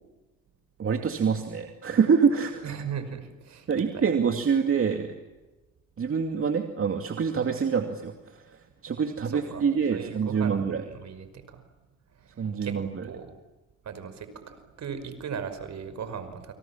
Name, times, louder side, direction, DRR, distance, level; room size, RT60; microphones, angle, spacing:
voice 1, 0.8-2.7 3.7-5.1 6.0-8.4 8.8-10.8 12.4-13.0, right 6 dB, 45° right, 5 dB, 2.5 m, -26 dB
voice 2, 2.6-4.1 9.2-11.6 12.1-12.8 13.0-13.3 13.8-16.5, right 7 dB, 65° right, 10 dB, 5.5 m, -38 dB
29.5 x 26.5 x 7.4 m, 1.1 s
cardioid pair, 90°, 30 cm